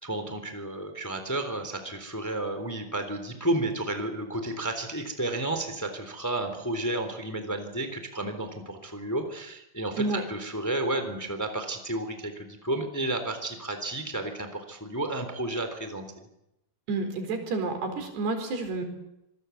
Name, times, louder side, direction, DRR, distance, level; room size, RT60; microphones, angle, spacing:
voice 1, 0.0-16.3, right 1 dB, 5° left, 7 dB, 2.8 m, -32 dB
voice 2, 16.9-18.8, right 3 dB, 90° right, 5 dB, 6.5 m, -30 dB
26.0 x 21.0 x 8.4 m, 0.87 s
omnidirectional pair, 4.6 m